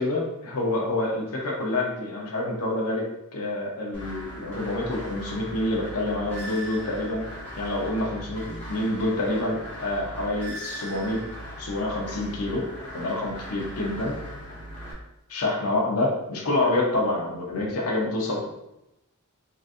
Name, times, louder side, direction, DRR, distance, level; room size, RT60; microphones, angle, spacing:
voice 1, 0.0-3.0 3.3-7.2 7.6-11.2 11.6-12.7 12.9-14.2 15.3-18.5, left 2 dB, 75° left, -2 dB, 0.7 m, -27 dB
sound 1, 3.9-14.9, equal, 10° left, 1.1 m, -39 dB
3.9 x 2.6 x 2.4 m, 0.88 s
head